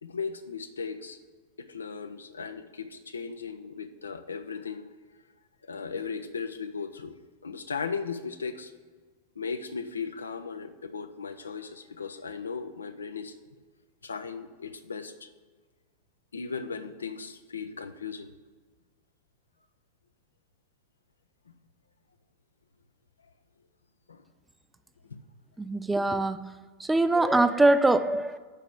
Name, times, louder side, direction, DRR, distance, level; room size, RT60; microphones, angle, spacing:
voice 1, 0.0-1.2 1.6-4.8 5.7-7.1 7.4-8.7 9.4-13.3 14.0-15.3 16.3-18.3 24.1-24.2, left 5 dB, 75° left, 10 dB, 0.6 m, -37 dB
voice 2, 25.6-26.4 26.8-28.4, right 2 dB, 5° right, 11 dB, 0.4 m, -23 dB
6.6 x 4.9 x 7.0 m, 1.4 s
figure-of-eight pair, 90°, 0 cm